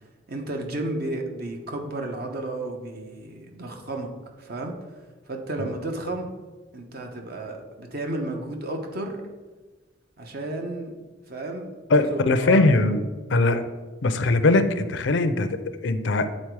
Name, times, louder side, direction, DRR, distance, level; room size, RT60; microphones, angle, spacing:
voice 1, 0.3-4.1 4.4-4.7 5.3-6.4 6.7-9.2 10.2-10.9 11.3-11.7 12.0-12.9, right 2 dB, 55° right, 3 dB, 0.9 m, -32 dB
voice 2, 11.9-13.0 13.3-13.6 14.0-15.5 15.8-16.3, left 2 dB, 70° left, 11 dB, 0.5 m, -20 dB
8.7 x 3.9 x 4.7 m, 1.3 s
head